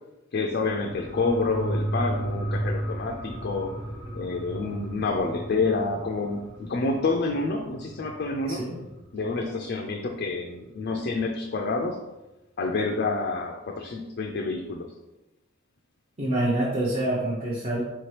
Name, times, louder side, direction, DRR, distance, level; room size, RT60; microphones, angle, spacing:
voice 1, 0.3-3.8 4.1-8.6 9.1-12.0 12.6-14.9, left 3 dB, 50° left, 2 dB, 0.4 m, -28 dB
sound 1, 0.6-9.7 10.1-10.2, right 1 dB, 70° right, 1.0 m, -34 dB
voice 2, 8.5-8.8 16.2-17.8, right 1 dB, 30° right, -6 dB, 0.7 m, -26 dB
4.6 x 2.9 x 3.2 m, 1.0 s
head